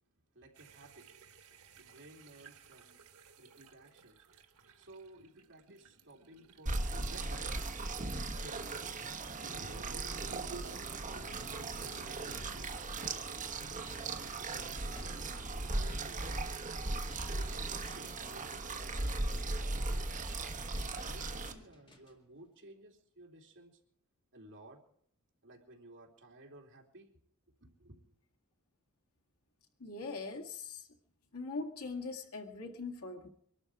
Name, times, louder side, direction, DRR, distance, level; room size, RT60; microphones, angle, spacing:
voice 1, 0.3-1.1 1.8-3.0 3.4-4.2 4.7-7.6 8.3-8.9 9.4-10.4 11.1-13.3 14.1-16.5 17.4-20.4 21.0-23.8 24.3-24.8 25.4-27.1 27.6-28.1, right 1 dB, 55° right, 3.3 m, -56 dB
sound 1, 0.6-8.5 9.4-12.7, right 3 dB, 75° right, 1.6 m, -54 dB
sound 2, 6.7-21.5, right 2 dB, 35° right, 1.3 m, -38 dB
sound 3, 10.9-22.2, left 1 dB, 25° left, 2.1 m, -58 dB
voice 2, 29.8-30.9 31.3-33.3, left 3 dB, 75° left, 2.0 m, -41 dB
23.5 x 12.5 x 4.8 m
head